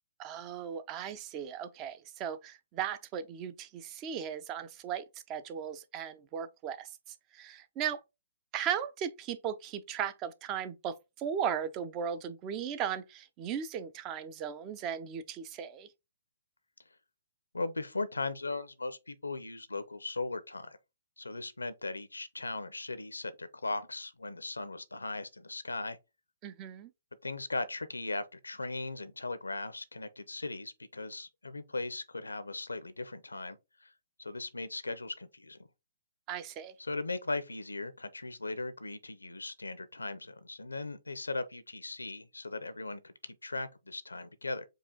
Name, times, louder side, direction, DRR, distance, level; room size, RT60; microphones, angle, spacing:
voice 1, 0.2-6.9 7.3-8.0 8.5-15.9 26.4-26.9 36.3-36.7, right 8 dB, 30° right, 0.5 m, -37 dB
voice 2, 17.5-20.8 21.2-26.0 27.2-33.9 34.2-35.6 36.8-44.6, left 3 dB, 90° left, 0.6 m, -38 dB
4.8 x 2.4 x 3.8 m
figure-of-eight pair, 130°, 0 cm